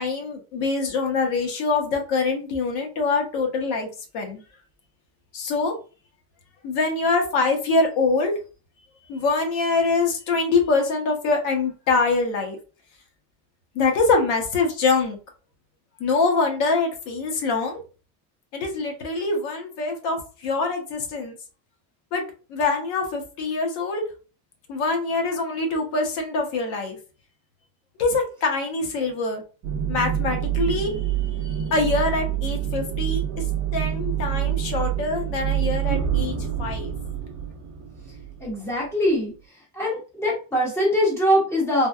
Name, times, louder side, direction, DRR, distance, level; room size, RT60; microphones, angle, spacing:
voice 1, 0.0-3.9 4.1-4.4 5.3-5.7 6.6-8.3 9.1-12.6 13.7-15.2 16.0-17.8 18.5-21.3 22.1-22.2 22.5-24.0 24.7-27.0 28.0-29.4 29.9-31.0 31.4-33.2 33.7-36.9, left 3 dB, 80° left, 3 dB, 1.2 m, -24 dB
sound 1, 29.6-38.9, right 10 dB, 40° right, 0.4 m, -27 dB
voice 2, 38.4-39.3 39.7-41.9, equal, 5° left, -4 dB, 0.9 m, -22 dB
3.4 x 2.2 x 2.4 m, 0.34 s
cardioid pair, 175°, 43 cm